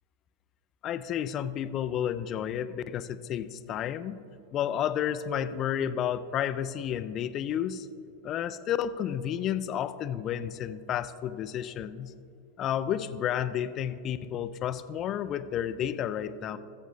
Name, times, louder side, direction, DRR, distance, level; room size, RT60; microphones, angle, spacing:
voice 1, 0.8-4.2 4.5-7.9 8.2-12.1 12.6-16.6, left 9 dB, 30° left, 13 dB, 0.4 m, -31 dB
18.5 x 7.8 x 2.6 m, 2.7 s
figure-of-eight pair, 90°, 0 cm